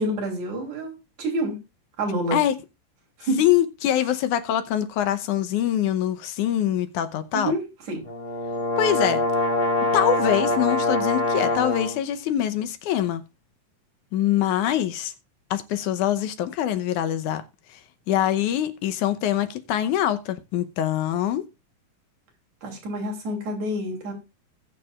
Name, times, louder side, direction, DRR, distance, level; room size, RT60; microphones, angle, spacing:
voice 1, 0.0-1.6 2.0-2.4 3.2-3.4 7.3-7.6 7.9-8.0 22.6-24.1, right 1 dB, 65° right, 4.4 m, -27 dB
voice 2, 3.4-7.5 8.8-9.2 9.9-13.2 14.1-15.1 15.5-17.4 18.1-21.4, left 11 dB, 80° left, 2.3 m, -24 dB
sound 1, 8.0-11.9, left 2 dB, 25° left, 3.9 m, -24 dB
20.0 x 6.7 x 2.4 m
omnidirectional pair, 3.6 m